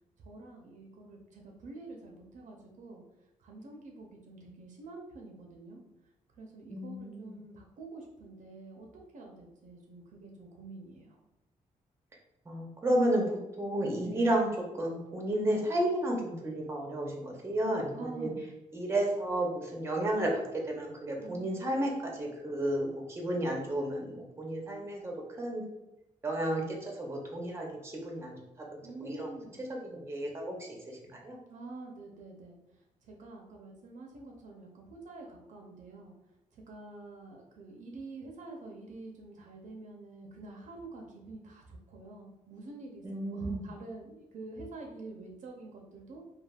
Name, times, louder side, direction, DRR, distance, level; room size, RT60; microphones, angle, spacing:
voice 1, 0.2-3.0 3.4-5.8 6.4-11.2 14.0-14.2 17.9-18.4 21.2-21.8 28.8-29.6 31.5-32.6 33.1-36.1 36.5-46.2, right 2 dB, 70° right, 1 dB, 0.6 m, -47 dB
voice 2, 6.7-7.4 12.5-13.2 13.6-14.5 14.8-18.3 18.7-25.6 26.2-28.4 29.0-29.3 29.6-31.4 43.0-43.7, right 1 dB, 20° right, 0 dB, 0.6 m, -32 dB
3.3 x 2.3 x 2.3 m, 0.92 s
cardioid pair, 115°, 13 cm